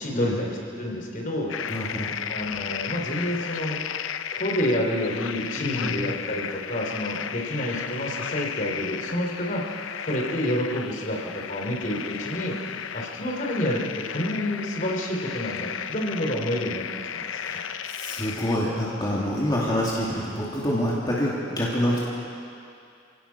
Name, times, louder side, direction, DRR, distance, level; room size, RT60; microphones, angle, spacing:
voice 1, 0.0-1.5 2.3-3.8 4.3-9.8 10.0-12.6 12.9-16.8 17.1-17.6, left 1 dB, 45° left, 0 dB, 3.4 m, -29 dB
sound 1, 1.5-18.6, left 8 dB, 85° left, 0.6 m, -34 dB
voice 2, 1.7-2.1 5.6-6.0 17.3-22.0, equal, 20° left, -6 dB, 2.6 m, -27 dB
27.5 x 17.5 x 5.8 m, 2.5 s
head